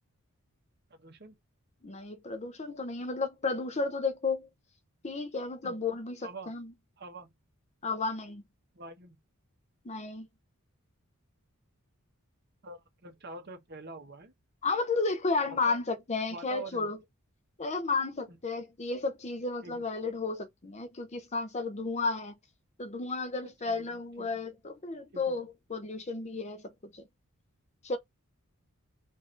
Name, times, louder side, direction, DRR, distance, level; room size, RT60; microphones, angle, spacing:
voice 1, 0.9-1.3 5.6-5.8 6.2-6.5 7.0-7.3 8.7-9.2 12.6-14.3 15.5-15.8 16.3-16.9 18.3-18.4 19.6-19.8 23.4-24.3 25.1-25.4, right 3 dB, 50° right, 1.1 m, -46 dB
voice 2, 1.8-4.5 5.0-6.7 7.8-8.4 9.8-10.3 14.6-17.0 17.6-22.4 22.8-27.0 27.8-28.0, left 3 dB, 30° left, 0.6 m, -33 dB
4.9 x 2.6 x 3.8 m
head